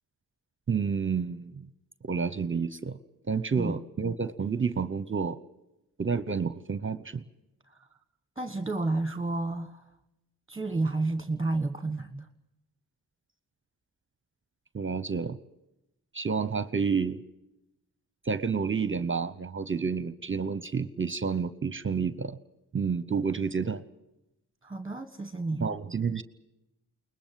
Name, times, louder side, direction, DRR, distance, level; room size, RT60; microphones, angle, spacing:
voice 1, 0.7-1.7 2.0-3.0 3.3-5.4 6.0-7.2 14.7-15.4 16.1-17.2 18.2-22.4 22.7-23.8 25.6-26.2, right 5 dB, 30° right, 14 dB, 0.8 m, -29 dB
voice 2, 8.4-9.9 10.5-12.3 24.6-25.7, right 2 dB, 10° right, 8 dB, 1.4 m, -31 dB
22.0 x 20.5 x 7.6 m, 0.90 s
cardioid pair, 60°, 39 cm